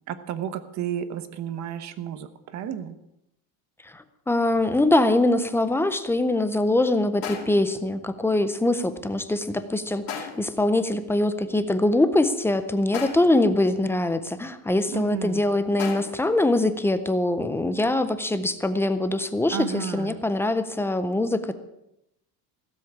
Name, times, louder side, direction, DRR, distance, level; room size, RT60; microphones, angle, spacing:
voice 1, 0.1-3.0 14.9-15.4 19.5-20.2, right 9 dB, 40° right, 11 dB, 1.1 m, -32 dB
voice 2, 3.8-21.5, left 2 dB, 5° left, 11 dB, 0.4 m, -23 dB
sound 1, 7.2-7.8 10.1-10.6 12.9-13.5 15.8-16.4, left 6 dB, 50° left, 2.7 m, -35 dB
17.0 x 7.6 x 8.6 m, 0.85 s
cardioid pair, 170°, 44 cm